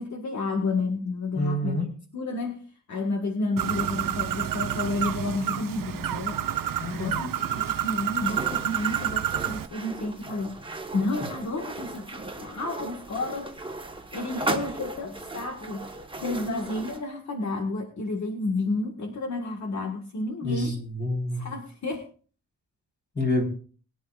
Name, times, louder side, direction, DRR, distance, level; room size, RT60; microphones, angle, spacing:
voice 1, 0.0-2.6 2.9-6.4 6.9-13.7 14.1-20.7 21.3-22.0, left 2 dB, 50° left, 3 dB, 1.6 m, -31 dB
voice 2, 1.3-1.9 6.8-7.2 20.4-21.5 23.2-23.4, left 1 dB, 30° left, 0 dB, 4.2 m, -28 dB
Bird, 3.6-9.7, right 11 dB, 70° right, 0.9 m, -29 dB
sound 1, 8.2-17.0, right 2 dB, 15° right, 1.3 m, -36 dB
22.0 x 10.5 x 2.4 m, 0.40 s
wide cardioid pair, 165°, 35 cm